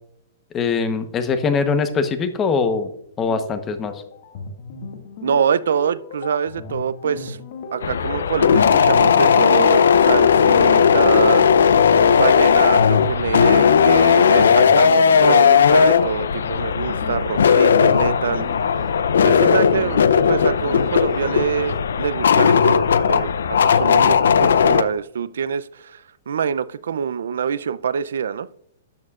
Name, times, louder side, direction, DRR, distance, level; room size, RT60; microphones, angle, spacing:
voice 1, 0.5-2.9 3.2-3.9, left 5 dB, 20° left, 9 dB, 1.0 m, -22 dB
sound 1, 3.2-21.8, left 4 dB, 55° left, 1.9 m, -37 dB
voice 2, 5.2-7.4 7.7-11.6 12.1-18.5 19.2-28.5, right 7 dB, 80° right, 16 dB, 0.5 m, -25 dB
sound 2, 7.8-24.8, left 7 dB, 85° left, 0.6 m, -16 dB
13.0 x 8.4 x 2.4 m, 0.72 s
hypercardioid pair, 150°, 0 cm